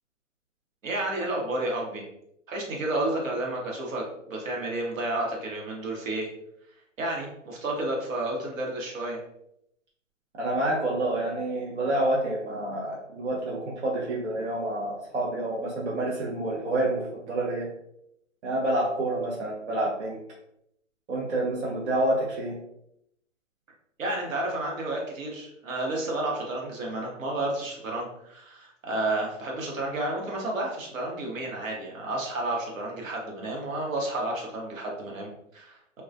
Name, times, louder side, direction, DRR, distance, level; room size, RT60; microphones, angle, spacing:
voice 1, 0.8-2.0 2.5-6.3 7.0-9.2 24.0-36.0, right 2 dB, 80° right, -1 dB, 1.0 m, -31 dB
voice 2, 10.4-17.7 18.4-20.2 21.1-22.6, right 1 dB, 60° right, -4 dB, 0.6 m, -28 dB
2.3 x 2.2 x 2.5 m, 0.76 s
hypercardioid pair, 170°, 39 cm